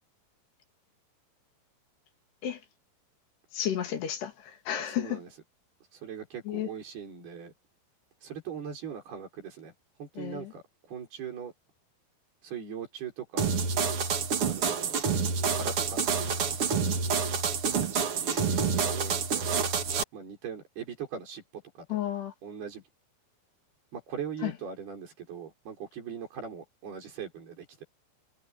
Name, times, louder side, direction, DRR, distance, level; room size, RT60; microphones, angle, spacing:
voice 1, 3.5-5.2 6.5-6.7 10.2-10.5 18.3-18.4 21.9-22.3 24.4-24.5, left 11 dB, 80° left, 4.6 m, -32 dB
voice 2, 4.8-5.3 5.9-7.5 8.2-9.7 10.0-11.5 12.4-13.5 14.4-15.0 15.5-16.6 17.6-19.6 20.1-21.4 21.8-22.0 22.4-22.8 23.9-27.8, right 7 dB, 70° right, 7.2 m, -40 dB
sound 1, 13.4-20.0, right 6 dB, 50° right, 2.0 m, -28 dB
omnidirectional pair, 4.7 m